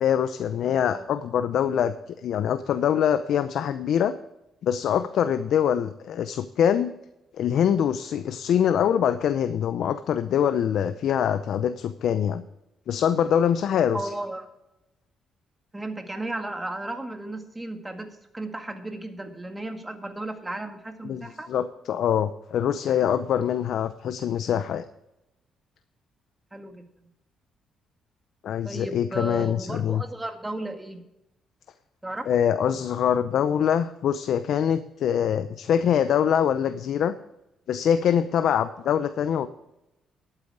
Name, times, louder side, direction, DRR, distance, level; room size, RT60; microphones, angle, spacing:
voice 1, 0.0-1.9 2.2-4.1 4.6-6.9 7.4-12.4 12.9-14.1 21.0-24.8 28.4-30.0 32.3-37.1 37.7-39.5, left 9 dB, 70° left, 11 dB, 0.6 m, -24 dB
voice 2, 13.9-14.5 15.7-21.5 26.5-27.1 28.6-31.0 32.0-32.3, right 2 dB, 15° right, 6 dB, 1.9 m, -34 dB
12.0 x 9.1 x 4.8 m, 0.90 s
cardioid pair, 90°, 0 cm